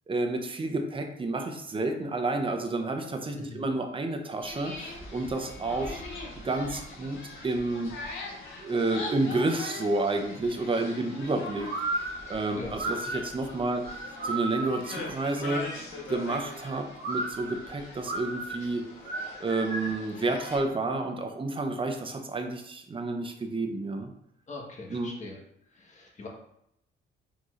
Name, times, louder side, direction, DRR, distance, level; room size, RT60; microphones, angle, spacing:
voice 1, 0.1-6.0 6.3-7.2 7.4-8.0 8.6-11.7 12.0-13.8 14.2-15.7 16.1-18.8 19.4-24.1 24.9-25.1, right 2 dB, 25° right, 4 dB, 0.7 m, -30 dB
voice 2, 3.3-3.7 12.5-12.7 24.5-25.4 25.7-26.3, left 2 dB, 35° left, -1 dB, 1.3 m, -42 dB
sound 1, 4.4-20.6, left 2 dB, 75° left, 1.3 m, -42 dB
sound 2, 11.7-15.0 17.0-20.1, right 2 dB, 55° right, 1.0 m, -34 dB
4.6 x 3.9 x 2.5 m, 0.76 s
cardioid pair, 90°, 20 cm